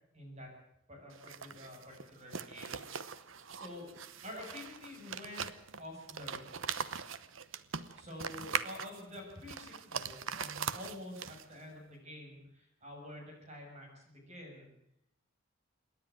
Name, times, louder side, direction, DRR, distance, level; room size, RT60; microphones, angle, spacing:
voice 1, 0.1-0.5 0.9-3.2 3.5-3.9 4.2-5.5 5.8-6.5 8.0-14.7, left 1 dB, 30° right, 1 dB, 7.0 m, -48 dB
sound 1, 1.1-11.6, right 7 dB, 70° right, 1.0 m, -41 dB
27.5 x 10.5 x 9.5 m, 0.78 s
head